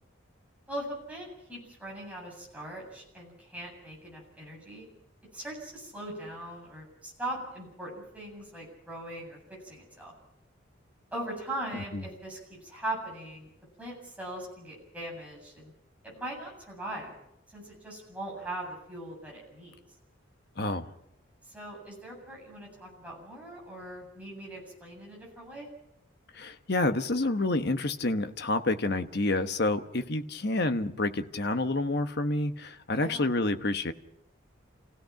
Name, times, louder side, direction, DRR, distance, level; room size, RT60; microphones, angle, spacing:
voice 1, 0.7-4.9 5.3-10.1 11.1-13.5 13.8-15.7 16.0-17.1 17.5-19.8 21.4-25.7 33.0-33.3, right 1 dB, 5° right, -3 dB, 7.9 m, -40 dB
voice 2, 11.7-12.0 20.6-20.9 26.3-33.9, left 2 dB, 50° left, 8 dB, 1.1 m, -28 dB
29.5 x 16.5 x 5.9 m, 0.78 s
head